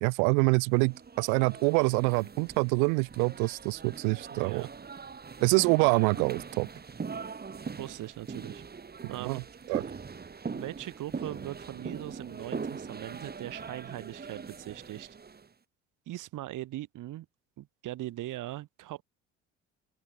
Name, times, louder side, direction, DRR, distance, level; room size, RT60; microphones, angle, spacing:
voice 1, 0.0-4.7 5.4-6.7 9.2-9.4 9.7-9.8, right 40 dB or more, 75° right, 0.7 m, -26 dB
sound 1, 0.8-15.5, right 5 dB, 25° right, 1.8 m, -41 dB
voice 2, 4.3-4.7 7.8-8.6 9.1-10.0 10.5-15.2 16.1-17.3 17.6-19.0, right 15 dB, 60° right, 1.2 m, -40 dB
open air
hypercardioid pair, 60°, 36 cm